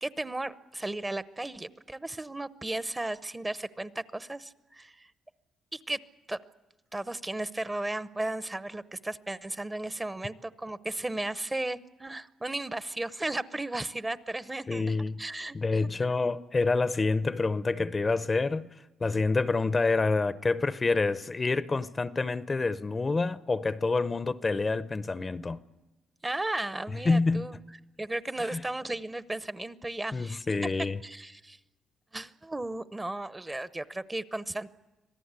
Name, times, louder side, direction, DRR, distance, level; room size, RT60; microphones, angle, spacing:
voice 1, 0.0-5.1 5.7-6.0 6.3-6.4 6.9-15.8 26.2-27.6 28.0-30.4 31.0-31.6 32.1-34.7, right 2 dB, 15° right, 0.8 m, -35 dB
voice 2, 14.7-15.2 15.5-18.7 19.0-25.6 27.0-27.5 28.4-28.6 30.1-31.0, left 3 dB, 30° left, 0.7 m, -27 dB
26.0 x 17.5 x 8.2 m
cardioid pair, 90°, 0 cm